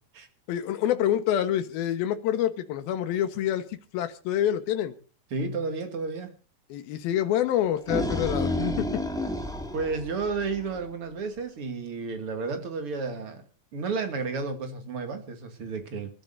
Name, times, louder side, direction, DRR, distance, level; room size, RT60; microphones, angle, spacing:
voice 1, 0.5-4.9 6.7-9.0, left 11 dB, 75° left, 9 dB, 3.1 m, -27 dB
voice 2, 5.3-6.3 9.7-13.4 13.7-16.1, right 4 dB, 40° right, 7 dB, 2.6 m, -32 dB
sound 1, 7.5-10.8, left 1 dB, ahead, 0.9 m, -30 dB
27.0 x 12.0 x 2.7 m, 0.36 s
omnidirectional pair, 4.4 m